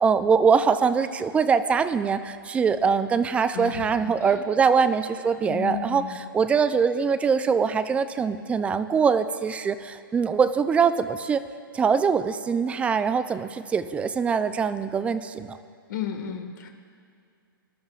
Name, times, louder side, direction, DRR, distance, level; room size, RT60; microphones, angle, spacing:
voice 1, 0.0-6.0 6.3-11.4 11.7-15.6, right 6 dB, 10° right, 12 dB, 0.5 m, -23 dB
voice 2, 3.5-4.4 5.5-6.2 15.9-16.7, left 8 dB, 55° left, 4 dB, 1.8 m, -33 dB
25.0 x 12.0 x 2.5 m, 2.3 s
hypercardioid pair, 130°, 12 cm